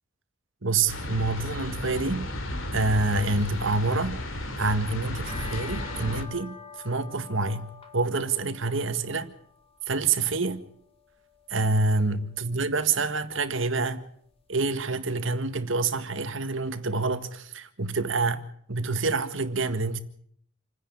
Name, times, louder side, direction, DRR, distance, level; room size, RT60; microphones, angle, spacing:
voice 1, 0.6-2.3 2.7-4.2 4.6-6.6 6.8-9.3 9.9-10.6 11.5-14.0 14.5-20.0, right 3 dB, 70° right, 1.7 m, -27 dB
sound 1, 0.9-6.2, left 1 dB, 90° left, 2.9 m, -34 dB
sound 2, 5.1-14.5, left 5 dB, 30° left, 2.6 m, -48 dB
28.5 x 10.0 x 10.0 m
head